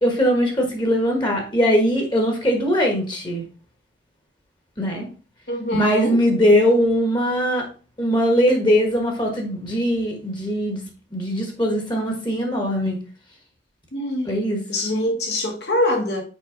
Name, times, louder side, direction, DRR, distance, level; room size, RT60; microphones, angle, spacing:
voice 1, 0.0-3.4 4.8-5.1 5.7-7.7 8.0-10.8 11.1-13.0 14.3-14.6, equal, 25° left, 1.4 m, -20 dB
voice 2, 5.5-6.2 13.9-14.3 14.7-16.2, left 1 dB, 70° left, 2.0 m, -24 dB
6.3 x 4.9 x 3.8 m
head